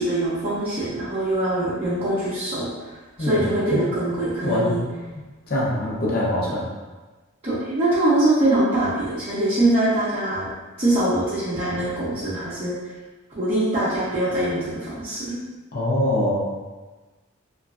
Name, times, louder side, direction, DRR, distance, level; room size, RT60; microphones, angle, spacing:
voice 1, 0.0-2.7 3.2-4.8 7.4-10.5 10.8-12.8 13.4-15.4, right 1 dB, 30° right, -13 dB, 0.6 m, -23 dB
voice 2, 3.2-3.8 4.4-4.8 5.5-6.7 15.7-16.5, left 1 dB, 45° left, -5 dB, 0.7 m, -23 dB
3.1 x 2.3 x 2.4 m, 1.2 s
head